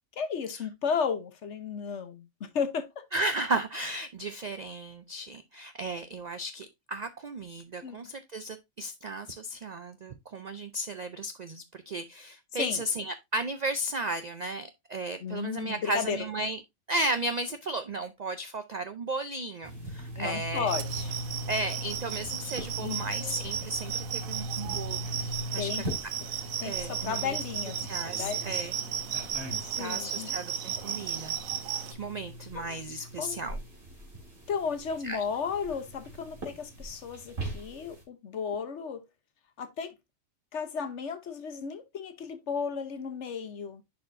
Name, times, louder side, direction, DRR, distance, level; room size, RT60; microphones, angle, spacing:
voice 1, 0.2-3.0 7.8-8.0 12.5-12.8 15.2-16.2 20.2-21.1 22.8-23.1 25.6-25.8 26.6-27.8 28.2-28.4 29.5-30.4 32.5-32.8 33.2-33.4 34.5-39.0 39.6-39.9 40.5-43.8, left 6 dB, 60° left, 1.2 m, -34 dB
voice 2, 3.1-16.6 16.9-20.7 21.5-25.8 26.6-27.4 27.9-28.8 29.8-31.4 31.7-33.6 35.0-35.2, right 2 dB, 65° right, 0.4 m, -34 dB
sound 1, 19.6-38.0, equal, 50° right, 2.7 m, -40 dB
sound 2, 20.7-31.9, right 9 dB, 85° right, 1.1 m, -35 dB
10.5 x 4.2 x 2.6 m
omnidirectional pair, 1.4 m